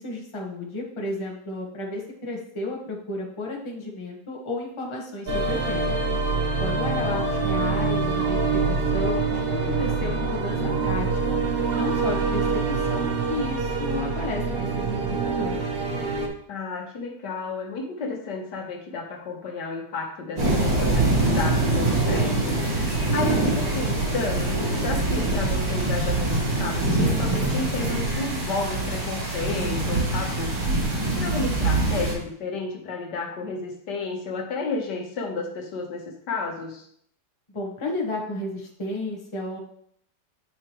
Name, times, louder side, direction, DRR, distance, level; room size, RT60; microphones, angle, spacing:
voice 1, 0.0-5.9 6.6-8.4 8.7-10.6 10.8-11.4 11.7-15.7 37.5-39.6, left 2 dB, 20° left, -2 dB, 1.1 m, -32 dB
sound 1, 5.3-16.3, right 4 dB, 45° right, 0.9 m, -25 dB
voice 2, 16.5-30.6 31.2-36.9, left 4 dB, 75° left, 1 dB, 1.7 m, -32 dB
sound 2, 20.4-32.1, right 2 dB, 85° right, 3.0 m, -24 dB
8.8 x 4.7 x 3.0 m, 0.65 s
omnidirectional pair, 1.9 m